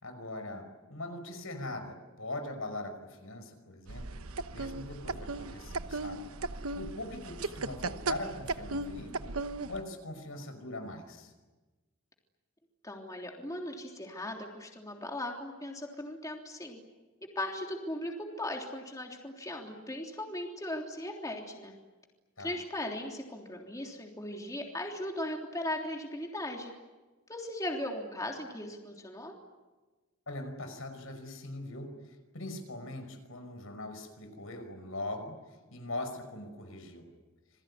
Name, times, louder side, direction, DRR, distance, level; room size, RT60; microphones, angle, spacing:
voice 1, 0.0-4.1 4.5-6.2 6.8-9.4 9.7-11.3 22.4-22.6 30.3-37.1, left 2 dB, 75° left, 8 dB, 5.4 m, -41 dB
sound 1, 3.9-9.8, right 3 dB, 85° right, 1.1 m, -37 dB
voice 2, 12.8-16.8 17.3-21.7 22.4-26.7 27.3-29.3, left 1 dB, 15° left, 1 dB, 3.3 m, -38 dB
28.0 x 21.5 x 9.9 m, 1.2 s
head